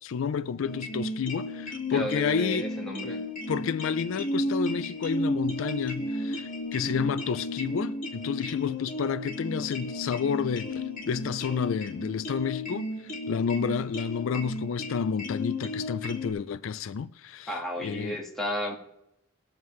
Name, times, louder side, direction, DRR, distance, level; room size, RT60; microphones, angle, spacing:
voice 1, 0.0-2.7 3.0-3.2 3.5-18.2, left 6 dB, 65° left, 0.3 m, -30 dB
sound 1, 0.6-16.3, left 1 dB, 40° left, 2.1 m, -33 dB
voice 2, 1.9-3.2 17.5-18.7, equal, ahead, 1.6 m, -33 dB
20.0 x 7.2 x 3.2 m
head